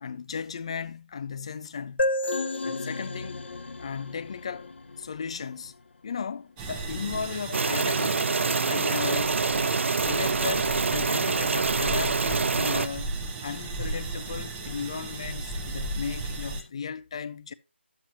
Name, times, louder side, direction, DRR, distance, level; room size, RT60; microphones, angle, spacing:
voice 1, 0.0-2.1 2.6-3.4 3.8-4.7 5.0-5.7 6.0-8.3 8.6-9.4 10.0-13.1 13.4-17.5, left 6 dB, 30° left, 0.4 m, -36 dB
sound 1, 2.0-5.5, left 2 dB, 65° left, 0.8 m, -31 dB
sound 2, 6.6-16.6, right 2 dB, 10° right, 0.7 m, -36 dB
sound 3, 7.5-12.9, right 4 dB, 80° right, 0.4 m, -26 dB
10.0 x 7.4 x 2.8 m
figure-of-eight pair, 170°, 7 cm